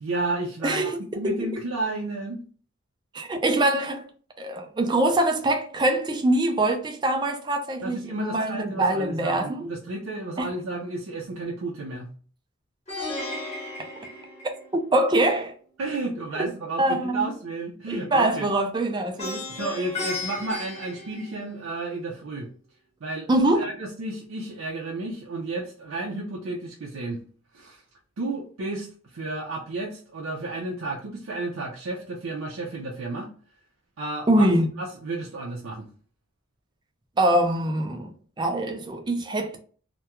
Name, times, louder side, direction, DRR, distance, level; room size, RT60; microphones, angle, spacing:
voice 1, 0.0-0.9 1.2-2.4 7.8-12.1 15.8-18.5 19.5-22.5 23.0-23.3 23.5-27.2 27.5-27.8 28.2-33.3 34.0-34.5 34.8-35.9, right 2 dB, 85° right, 0.5 m, -32 dB
voice 2, 0.6-1.6 3.1-4.0 4.4-9.7 10.4-10.5 14.7-15.5 16.8-17.3 17.9-19.5 23.3-23.7 34.3-34.7 37.2-38.1 38.4-39.6, right 1 dB, 20° right, 0.4 m, -24 dB
Plucked string instrument, 12.9-15.0 19.2-21.8, left 2 dB, 35° left, 0.7 m, -34 dB
2.3 x 2.2 x 2.8 m
head